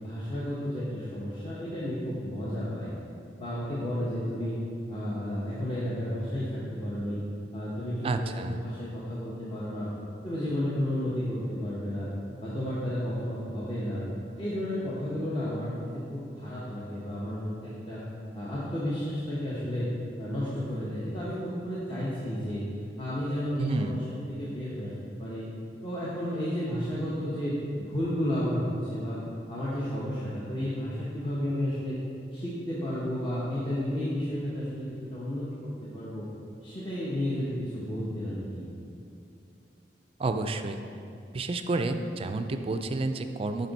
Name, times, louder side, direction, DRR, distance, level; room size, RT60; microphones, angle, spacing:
voice 1, 0.0-2.9 3.4-4.6 4.9-7.2 7.5-9.9 10.2-12.1 12.4-14.0 14.4-18.0 18.3-19.9 20.2-22.6 23.0-24.9 25.2-25.5 25.8-29.2 29.5-32.0 32.3-36.3 36.6-38.7, equal, 30° left, -8 dB, 0.9 m, -32 dB
voice 2, 8.0-8.6 23.6-24.0 40.2-40.8 41.3-43.7, right 2 dB, 30° right, 8 dB, 0.3 m, -30 dB
7.5 x 5.3 x 4.0 m, 2.7 s
head